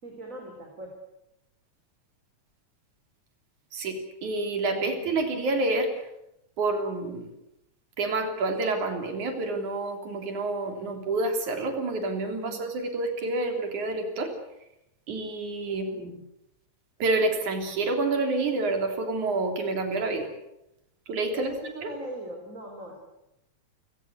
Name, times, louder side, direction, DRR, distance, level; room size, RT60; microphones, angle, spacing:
voice 1, 0.0-0.9 4.7-5.1 12.4-12.6 15.7-16.0 21.3-23.0, right 1 dB, 25° right, 2 dB, 3.8 m, -40 dB
voice 2, 3.7-5.9 6.6-7.3 8.0-14.3 15.1-16.1 17.0-20.3 21.1-21.5 21.8-21.9, right 2 dB, 90° right, 5 dB, 5.0 m, -28 dB
28.5 x 17.5 x 8.2 m, 0.86 s
omnidirectional pair, 3.3 m